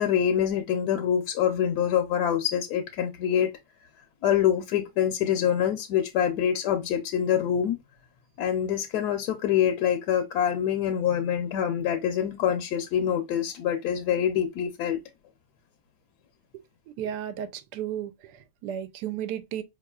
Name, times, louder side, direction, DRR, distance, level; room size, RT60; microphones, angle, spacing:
voice 1, 0.0-3.5 4.2-7.8 8.4-15.0, left 9 dB, 75° left, 1.1 m, -25 dB
voice 2, 17.0-19.6, right 10 dB, 75° right, 1.2 m, -34 dB
4.8 x 3.0 x 2.3 m
omnidirectional pair, 1.8 m